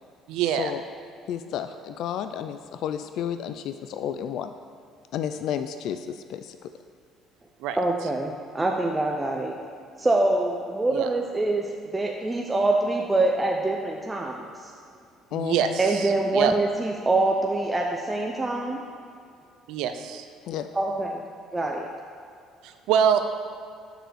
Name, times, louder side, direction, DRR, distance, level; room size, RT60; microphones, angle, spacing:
voice 1, 0.3-0.7 7.6-7.8 10.9-11.1 15.3-16.5 19.7-20.3 22.6-23.2, right 8 dB, 80° right, 8 dB, 0.5 m, -25 dB
voice 2, 1.3-4.5 5.1-6.7 15.3-15.8 20.5-20.7, left 9 dB, 70° left, 9 dB, 0.3 m, -31 dB
voice 3, 7.8-9.6 10.0-11.7 11.9-14.7 15.8-18.8 20.7-21.2 21.5-21.9, right 2 dB, 15° right, 0 dB, 0.6 m, -25 dB
6.8 x 4.0 x 6.2 m, 2.4 s
cardioid pair, 95°, 0 cm